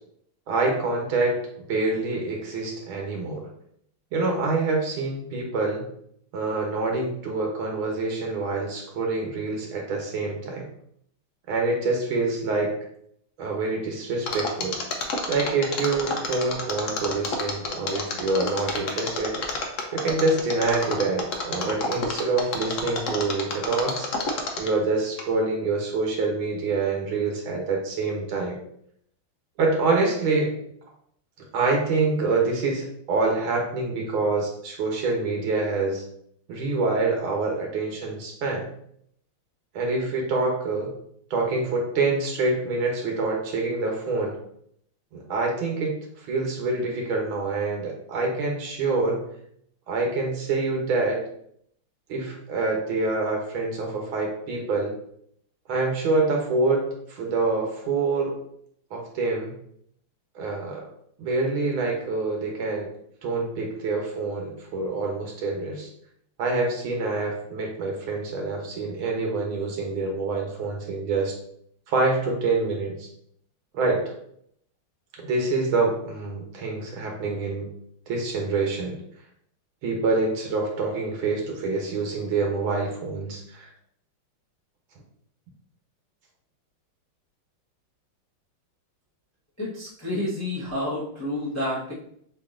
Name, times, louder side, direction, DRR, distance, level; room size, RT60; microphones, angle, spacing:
voice 1, 0.5-3.5 4.1-5.9 6.3-10.6 11.5-12.7 13.4-14.8 15.3-19.4 19.9-24.1 24.6-28.6 29.6-30.6 31.5-36.0 36.5-38.7 39.7-40.9 41.3-44.4 45.1-49.2 49.9-51.2 52.1-54.9 55.7-58.3 58.9-59.5 60.4-60.8 61.2-62.9 63.2-65.9 66.4-71.4 71.9-73.1 73.7-74.0 75.2-77.7 78.1-79.0 79.8-83.7, right 3 dB, 75° right, 0 dB, 1.8 m, -26 dB
Mechanisms, 14.3-24.8 25.2-25.3, left 3 dB, 85° left, 0.6 m, -29 dB
voice 2, 89.6-91.9, left 1 dB, 10° left, -7 dB, 0.7 m, -29 dB
7.2 x 2.8 x 2.5 m, 0.68 s
omnidirectional pair, 2.3 m